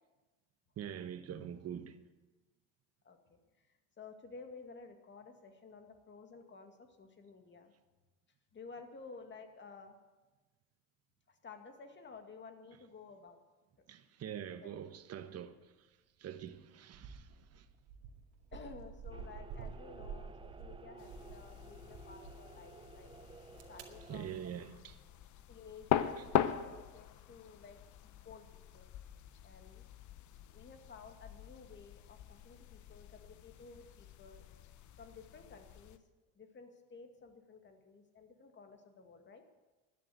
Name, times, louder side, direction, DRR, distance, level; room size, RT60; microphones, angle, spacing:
voice 1, 0.8-2.0 13.9-15.9 16.2-17.7 24.1-25.0 26.2-26.3, right 9 dB, 40° right, 1.2 m, -45 dB
voice 2, 3.0-3.4 4.0-7.7 8.5-10.0 11.3-13.4 14.6-14.9 18.5-23.1 23.7-24.4 25.5-28.9 29.4-29.8 30.5-34.4 35.0-36.0 36.4-39.4, left 4 dB, 30° left, 2.2 m, -53 dB
sound 1, 16.4-16.6 16.9-21.5 21.8-22.4 23.2-23.8, right 6 dB, 70° right, 2.2 m, -49 dB
sound 2, 19.1-24.2, right 5 dB, 15° right, 0.5 m, -55 dB
sound 3, 21.0-36.0, left 11 dB, 50° left, 0.9 m, -41 dB
12.5 x 10.0 x 8.0 m
supercardioid pair, 90°, 38 cm